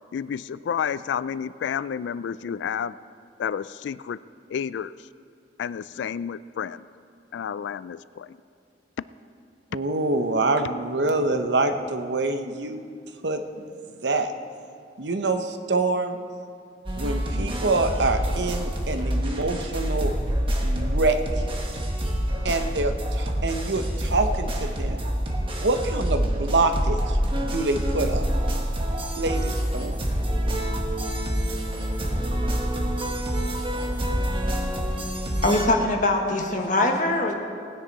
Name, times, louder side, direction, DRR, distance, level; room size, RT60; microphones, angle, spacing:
voice 1, 0.1-2.9 3.4-4.2 4.5-4.9 5.6-6.9 7.3-8.4, left 7 dB, 90° left, 16 dB, 0.3 m, -30 dB
voice 2, 9.7-12.9 13.2-13.4 14.0-14.3 15.0-16.2 17.0-20.1 20.6-21.2 22.4-25.0 25.6-28.2 29.2-30.0, right 2 dB, 80° right, 7 dB, 0.8 m, -26 dB
sound 1, 16.9-35.6, equal, 30° right, 1.3 m, -26 dB
voice 3, 35.4-37.3, left 2 dB, 50° left, 2 dB, 1.4 m, -22 dB
19.0 x 9.8 x 4.0 m, 2.3 s
head